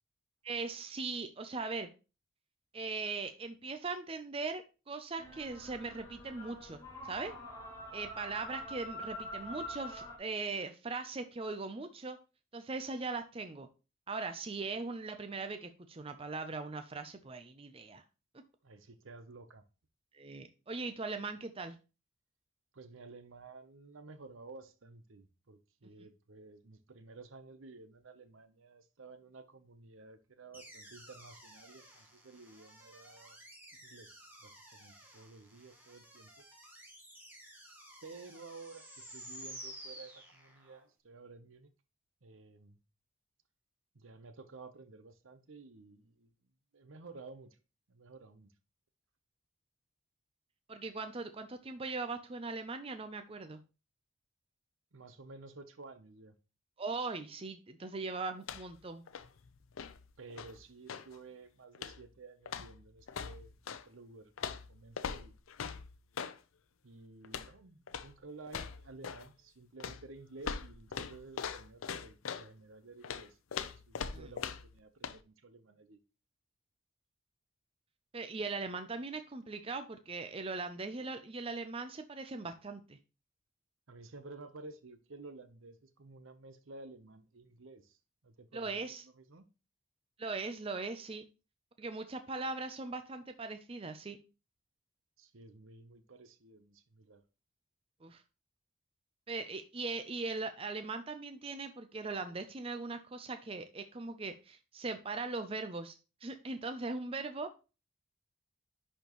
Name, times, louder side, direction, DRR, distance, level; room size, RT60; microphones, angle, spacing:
voice 1, 0.4-1.9 2.7-7.3 7.9-12.2 12.5-13.7 14.1-18.0 20.1-21.8 26.0-26.1 50.7-53.6 56.8-59.0 74.1-74.3 78.1-83.0 88.5-89.0 90.2-91.2 91.8-94.2 98.0-98.2 99.3-106.0 106.2-107.5, right 3 dB, 25° right, 0.5 m, -40 dB
sound 1, 5.2-10.2, left 1 dB, 15° left, 2.5 m, -45 dB
voice 2, 18.6-19.6 22.7-33.4 33.8-36.3 38.0-41.7 42.2-42.8 43.9-46.3 46.7-47.6 47.9-48.5 54.9-56.3 60.2-63.5 63.8-65.3 66.8-73.4 73.7-76.0 83.9-88.0 88.2-89.5 95.2-97.2, right 3 dB, 70° right, 0.8 m, -53 dB
sound 2, 30.5-40.8, right 1 dB, 10° right, 1.4 m, -53 dB
sound 3, 58.4-58.8 59.1-61.2 61.7-62.1 62.5-63.9 64.4-66.4 67.2-67.6 67.9-68.2 68.5-69.3 69.8-72.5 73.0-74.8 75.0-75.2, left 6 dB, 80° left, 0.5 m, -41 dB
10.5 x 4.4 x 3.0 m
head